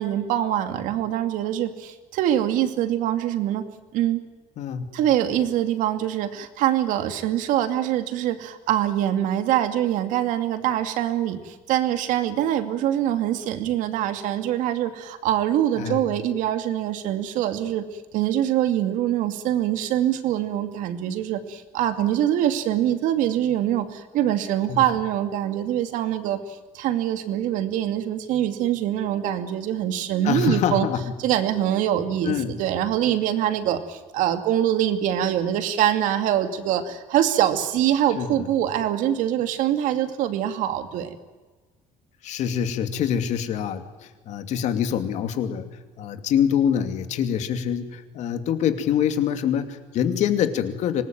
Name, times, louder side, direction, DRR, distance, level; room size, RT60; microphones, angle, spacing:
voice 1, 0.0-3.7 3.9-4.2 4.9-17.9 18.1-30.9 31.2-41.2, right 11 dB, 75° right, 9 dB, 2.5 m, -24 dB
voice 2, 30.2-31.1 32.2-32.5 38.2-38.3 42.2-45.7 46.0-51.0, left 9 dB, 60° left, 8 dB, 2.7 m, -25 dB
25.0 x 19.5 x 9.2 m, 1.3 s
cardioid pair, 135°, 14 cm